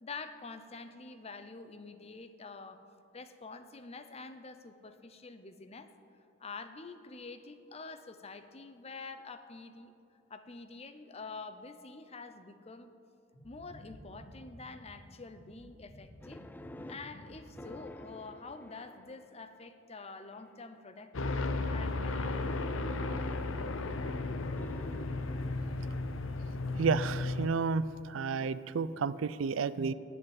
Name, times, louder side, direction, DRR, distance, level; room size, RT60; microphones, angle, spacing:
voice 1, 0.0-2.8 3.1-5.9 6.4-9.9 10.3-12.9 13.4-16.4 16.9-22.8, left 4 dB, 30° left, 9 dB, 0.7 m, -47 dB
sound 1, 13.3-18.4, equal, 50° left, 2.3 m, -53 dB
sound 2, 16.2-19.6 20.3-20.8 22.2-26.3 28.4-28.5, left 1 dB, 10° left, 0.3 m, -51 dB
sound 3, 21.1-27.5, left 2 dB, 75° left, 0.7 m, -34 dB
voice 2, 26.8-29.9, right 5 dB, 75° right, 16 dB, 0.4 m, -31 dB
11.0 x 8.0 x 8.9 m, 2.7 s
head